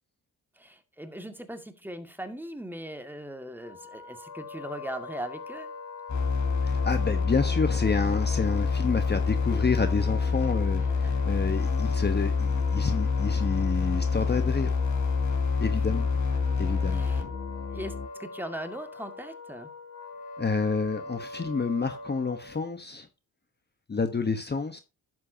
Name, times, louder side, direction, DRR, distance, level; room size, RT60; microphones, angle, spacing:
voice 1, 0.6-5.7 11.0-11.1 16.9-17.2 17.7-19.7, right 1 dB, 5° right, 2.1 m, -39 dB
Wind instrument woodwind instrument, 3.6-22.7, left 3 dB, 85° left, 3.4 m, -42 dB
sound 1, 6.1-18.1, left 5 dB, 50° left, 3.3 m, -27 dB
voice 2, 6.6-14.7 15.6-16.1 16.6-17.0 20.4-23.1 23.9-24.8, left 4 dB, 25° left, 1.2 m, -29 dB
11.5 x 7.7 x 2.8 m
cardioid pair, 80°, 37 cm